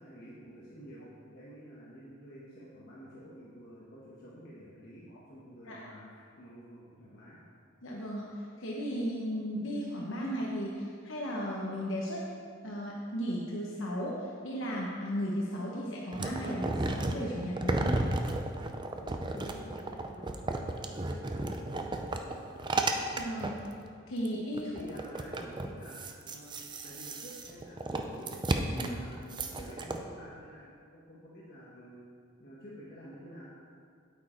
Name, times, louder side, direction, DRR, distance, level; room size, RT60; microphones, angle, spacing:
voice 1, 0.0-7.4 19.0-22.5 24.6-32.1 32.4-33.4, equal, 50° left, -7 dB, 1.3 m, -49 dB
voice 2, 7.8-12.2 12.6-18.1 23.2-23.6 24.1-24.7 28.9-29.0, equal, 65° left, -3 dB, 1.1 m, -35 dB
sound 1, 16.1-23.7 24.2-24.3 24.5-30.0, right 2 dB, 20° right, 0.5 m, -33 dB
8.8 x 8.5 x 4.4 m, 2.2 s
head